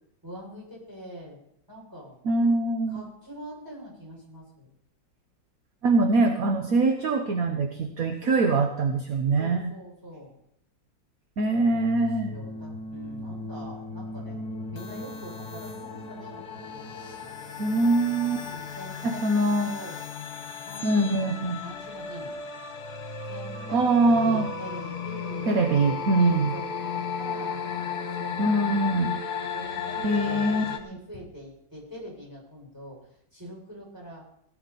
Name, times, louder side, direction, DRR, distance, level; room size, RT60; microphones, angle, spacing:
voice 1, 0.2-1.4 1.7-2.2 2.9-4.7 8.2-8.8 9.4-10.4 11.5-14.4 14.7-16.9 18.4-19.2 19.6-20.0 20.6-21.3 21.6-22.4 23.3-23.8 24.0-25.5 26.1-27.6 28.2-28.6 29.5-33.0 33.3-34.2, equal, 10° right, -3 dB, 6.6 m, -44 dB
voice 2, 2.2-3.0 5.8-9.7 11.4-12.3 17.6-18.4 19.0-19.7 20.8-21.6 23.7-24.5 25.5-26.5 28.4-29.2 30.0-30.6, right 2 dB, 55° right, 5 dB, 1.4 m, -23 dB
sound 1, 11.6-30.8, left 5 dB, 60° left, 1.8 m, -35 dB
17.0 x 12.5 x 4.2 m, 0.74 s
omnidirectional pair, 2.0 m